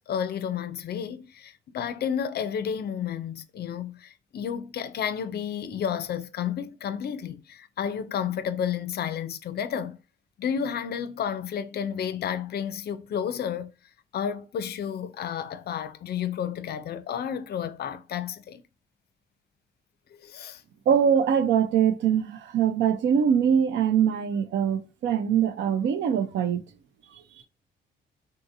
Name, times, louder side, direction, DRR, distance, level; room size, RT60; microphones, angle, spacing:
voice 1, 0.0-10.0 10.4-13.7 14.1-18.6 20.1-20.6, left 8 dB, 55° left, 0.4 m, -31 dB
voice 2, 20.9-26.6, right 8 dB, 70° right, 0.5 m, -23 dB
3.7 x 2.7 x 2.6 m
cardioid pair, 90°, 20 cm